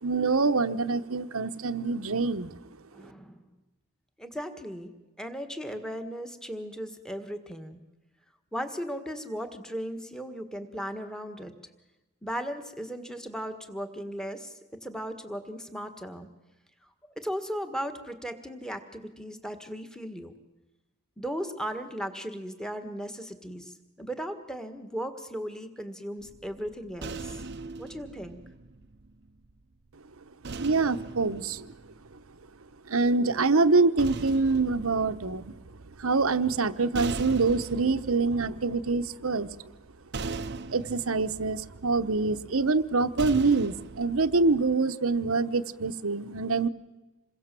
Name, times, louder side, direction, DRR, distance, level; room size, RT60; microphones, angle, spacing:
voice 1, 0.0-2.6 30.6-31.7 32.9-35.6 36.0-39.5 40.7-46.7, right 3 dB, 75° right, 10 dB, 1.0 m, -25 dB
voice 2, 2.9-3.5 4.2-4.9 5.2-7.8 8.5-11.5 12.2-14.5 14.8-16.3 17.2-20.3 21.2-27.4 27.8-28.4, equal, 5° left, 8 dB, 1.6 m, -37 dB
sound 1, 26.2-29.5 30.4-32.7 33.7-44.7, right 3 dB, 50° right, 0.7 m, -40 dB
27.5 x 22.0 x 7.6 m, 1.1 s
head